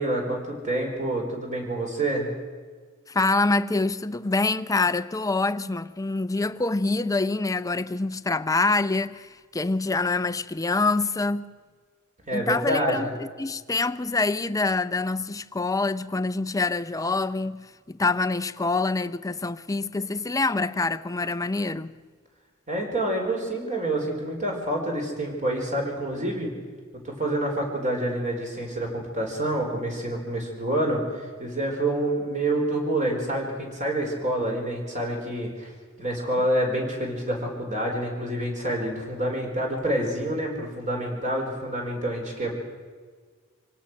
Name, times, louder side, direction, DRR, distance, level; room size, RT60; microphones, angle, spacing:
voice 1, 0.0-2.3 12.3-13.1 22.7-26.5 27.0-35.7 36.0-42.6, right 1 dB, 35° right, 4.9 m, -27 dB
voice 2, 3.1-11.5 12.3-21.9, left 3 dB, 15° left, 0.5 m, -26 dB
25.0 x 18.0 x 6.4 m
head